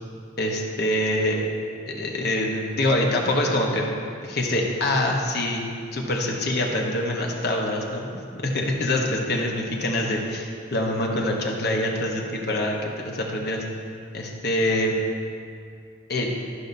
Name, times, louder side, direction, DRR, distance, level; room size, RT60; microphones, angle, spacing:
voice 1, 0.4-1.4 1.9-4.0 4.2-5.6 5.9-13.6 14.1-15.0 16.1-16.3, left 1 dB, 55° left, 0 dB, 1.0 m, -25 dB
12.5 x 5.6 x 2.7 m, 2.4 s
head